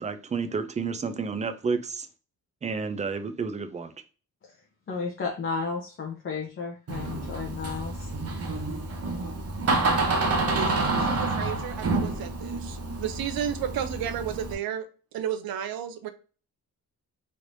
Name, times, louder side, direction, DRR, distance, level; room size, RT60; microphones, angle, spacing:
voice 1, 0.0-2.1 2.6-3.9, right 5 dB, 20° right, 0.3 m, -30 dB
voice 2, 4.9-8.1, left 5 dB, 35° left, 0.6 m, -33 dB
Door, 6.9-14.5, right 3 dB, 40° right, 0.7 m, -28 dB
voice 3, 10.5-14.9 15.1-16.1, right 9 dB, 75° right, 0.5 m, -33 dB
3.2 x 3.1 x 2.6 m
cardioid pair, 120°, 36 cm